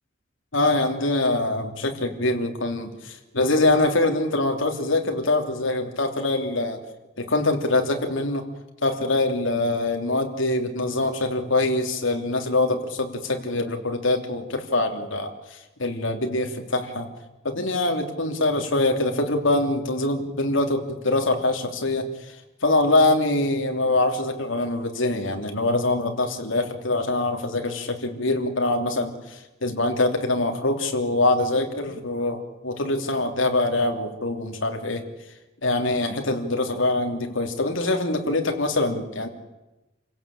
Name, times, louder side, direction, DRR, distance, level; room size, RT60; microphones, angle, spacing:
voice 1, 0.5-6.8 7.2-8.4 8.8-17.1 17.4-22.4 22.6-35.0 35.6-39.3, left 2 dB, 75° left, 4 dB, 3.2 m, -24 dB
28.0 x 16.5 x 8.7 m, 1.0 s
head